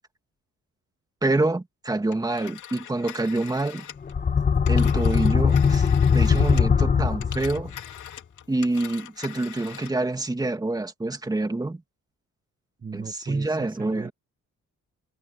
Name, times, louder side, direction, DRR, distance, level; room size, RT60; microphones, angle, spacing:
voice 1, 1.2-3.9 4.7-5.9 6.1-7.8 8.5-11.8 12.9-14.1, right 2 dB, 10° right, 2.1 m, -26 dB
Telephone, 2.1-6.8 7.1-10.0, left 11 dB, 70° left, 2.4 m, -42 dB
sound 1, 4.0-7.8, left 6 dB, 30° left, 1.1 m, -20 dB
voice 2, 12.8-14.1, right 5 dB, 25° right, 1.7 m, -37 dB
cardioid pair, 130°, 31 cm